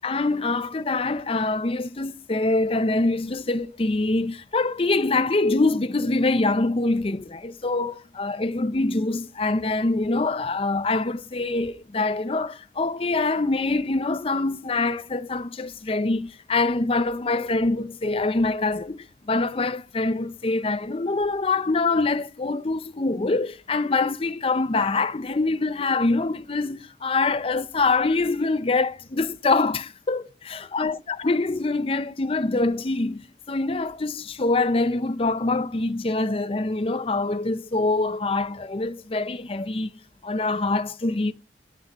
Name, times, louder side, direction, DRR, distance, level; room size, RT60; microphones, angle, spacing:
voice 1, 0.0-39.9 40.2-41.3, left 3 dB, 30° left, 0.6 m, -24 dB
16.5 x 8.9 x 3.0 m
head